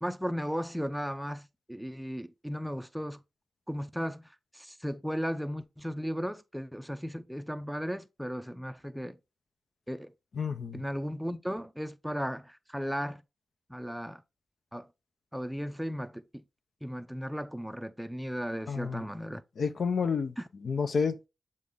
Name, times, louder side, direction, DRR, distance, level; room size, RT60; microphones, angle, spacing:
voice 1, 0.0-3.2 3.7-4.3 4.5-9.2 9.9-10.1 10.7-13.2 13.7-14.2 14.7-14.9 15.3-16.4 16.8-19.4 20.4-20.5, equal, ahead, 0.4 m, -35 dB
voice 2, 10.4-10.8 18.7-19.0 19.6-20.3 20.6-21.3, left 5 dB, 70° left, 0.6 m, -30 dB
7.4 x 3.8 x 3.5 m
wide cardioid pair, 100°, 0 cm